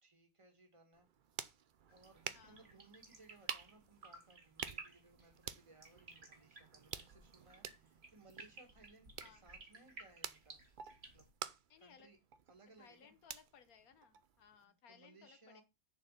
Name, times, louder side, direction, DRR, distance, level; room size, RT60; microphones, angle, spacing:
voice 1, 0.0-1.1 1.9-10.6 11.1-11.3 11.8-12.2 12.5-13.1 14.6-15.6, right 2 dB, 20° right, 1.7 m, -64 dB
sound 1, 0.9-14.6, right 8 dB, 60° right, 0.5 m, -51 dB
sound 2, 1.9-11.3, right 3 dB, 45° right, 1.8 m, -56 dB
voice 2, 9.2-9.5 11.7-12.1 12.8-15.6, left 7 dB, 80° left, 1.5 m, -63 dB
6.9 x 4.4 x 6.6 m
omnidirectional pair, 1.5 m